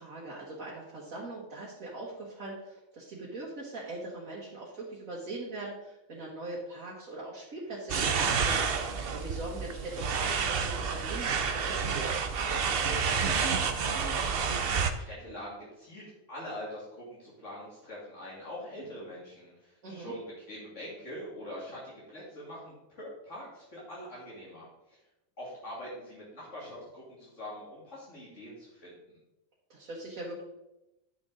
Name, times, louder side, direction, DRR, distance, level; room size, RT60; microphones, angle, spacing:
voice 1, 0.0-12.1 19.8-20.1 29.7-30.4, right 2 dB, 90° right, -5 dB, 2.1 m, -41 dB
sound 1, 7.9-14.9, right 6 dB, 55° right, 0.8 m, -29 dB
voice 2, 12.4-25.0 25.4-29.2, left 1 dB, 65° left, -8 dB, 2.9 m, -44 dB
10.5 x 6.3 x 3.9 m, 0.92 s
omnidirectional pair, 1.4 m